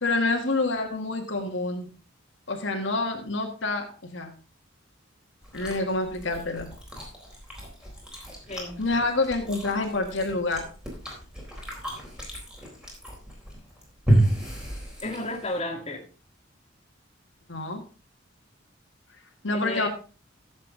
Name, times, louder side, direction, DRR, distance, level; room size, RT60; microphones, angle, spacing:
voice 1, 0.0-1.9 2.5-4.3 5.5-6.7 8.8-10.7 17.5-17.8 19.4-19.9, left 2 dB, 70° left, 2 dB, 1.7 m, -27 dB
Chewing mastication, 5.4-15.6, right 1 dB, 5° right, 3.8 m, -31 dB
voice 2, 8.5-8.8 15.0-16.1 19.5-19.9, left 2 dB, 30° left, -1 dB, 2.4 m, -33 dB
14.0 x 7.4 x 3.8 m, 0.35 s
head